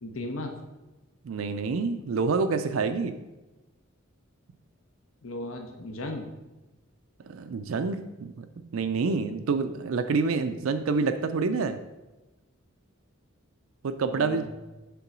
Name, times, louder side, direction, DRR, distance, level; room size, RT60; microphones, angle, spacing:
voice 1, 0.0-0.5 5.2-6.3 14.0-14.5, left 1 dB, 70° left, 3 dB, 0.9 m, -36 dB
voice 2, 1.2-3.1 7.2-11.8 13.8-14.5, right 4 dB, 75° right, 9 dB, 0.4 m, -27 dB
6.9 x 3.8 x 6.0 m, 1.1 s
head